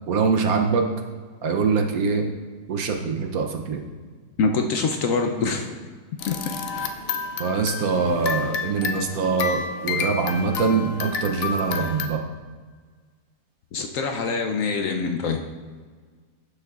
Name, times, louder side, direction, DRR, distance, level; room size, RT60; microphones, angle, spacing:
voice 1, 0.1-0.9 1.4-2.3 2.7-3.8 7.4-12.2, right 5 dB, 65° right, 4 dB, 1.1 m, -23 dB
voice 2, 4.4-5.8 6.3-6.4 13.7-15.4, left 4 dB, 65° left, 4 dB, 0.9 m, -24 dB
sound 1, 6.2-12.1, left 5 dB, 85° left, 0.5 m, -30 dB
11.5 x 6.6 x 2.4 m, 1.6 s
omnidirectional pair, 1.7 m